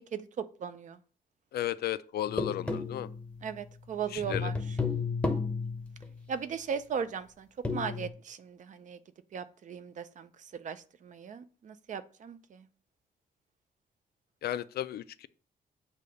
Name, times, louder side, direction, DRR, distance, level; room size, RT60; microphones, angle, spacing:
voice 1, 0.1-1.0 3.4-4.5 6.3-9.0 9.3-10.3 10.6-12.6, right 7 dB, 50° right, 0.5 m, -37 dB
voice 2, 1.5-3.1 4.1-4.5 14.4-15.3, left 12 dB, 85° left, 0.4 m, -34 dB
sound 1, 2.3-3.6 4.0-6.2 7.6-8.1, left 4 dB, 5° left, 0.7 m, -33 dB
8.2 x 2.8 x 5.2 m
wide cardioid pair, 165°, 16 cm